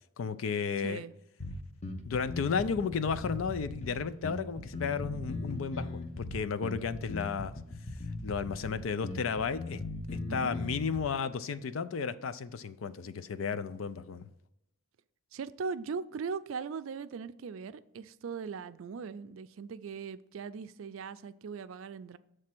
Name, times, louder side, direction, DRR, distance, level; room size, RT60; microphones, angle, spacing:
voice 1, 0.2-1.0 2.0-7.5 8.2-9.8 10.1-14.3, left 6 dB, 80° left, 0.4 m, -33 dB
sound 1, 1.4-11.0, left 2 dB, 35° left, 0.8 m, -39 dB
voice 2, 15.3-22.2, right 5 dB, 80° right, 0.4 m, -39 dB
7.5 x 3.2 x 6.0 m
head